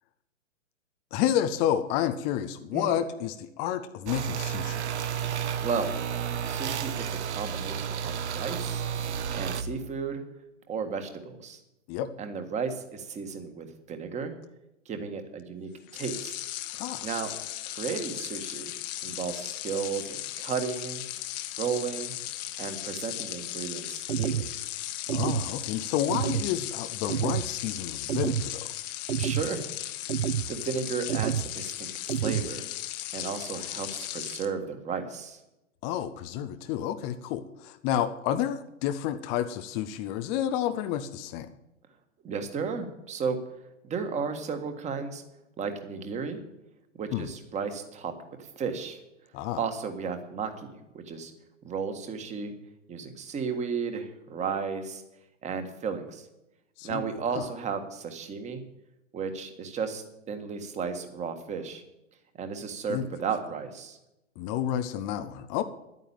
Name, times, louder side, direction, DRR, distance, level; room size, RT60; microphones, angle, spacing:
voice 1, 1.1-4.8 11.9-12.1 16.7-17.1 25.1-28.7 35.8-41.5 47.1-47.3 49.3-49.6 56.8-57.0 57.3-57.5 62.9-63.1 64.4-65.6, left 10 dB, 15° left, 8 dB, 0.4 m, -30 dB
sound 1, 4.1-9.6, right 8 dB, 60° right, 1.3 m, -31 dB
voice 2, 5.6-6.0 6.4-8.8 9.3-10.2 10.7-11.6 12.2-14.3 14.8-16.4 17.0-17.3 17.6-18.7 19.0-21.0 21.6-22.1 22.6-24.5 29.1-29.6 30.5-31.9 32.1-32.6 33.1-35.4 42.2-43.4 43.8-45.2 45.6-46.4 47.0-48.1 48.6-49.0 49.6-51.3 51.6-52.5 52.9-55.0 55.4-56.3 56.8-58.6 59.1-61.8 62.4-64.0, right 5 dB, 15° right, 8 dB, 1.7 m, -34 dB
sound 2, 15.9-34.5, left 14 dB, 35° left, 1.0 m, -37 dB
sound 3, 24.1-24.5 25.1-25.5 26.1-26.5 27.1-27.5 28.1-28.5 29.1-29.5 30.1-30.5 31.1-31.5 32.1-32.5, right 9 dB, 85° right, 0.8 m, -28 dB
11.0 x 9.3 x 8.9 m, 0.90 s
hypercardioid pair, 130°, 39 cm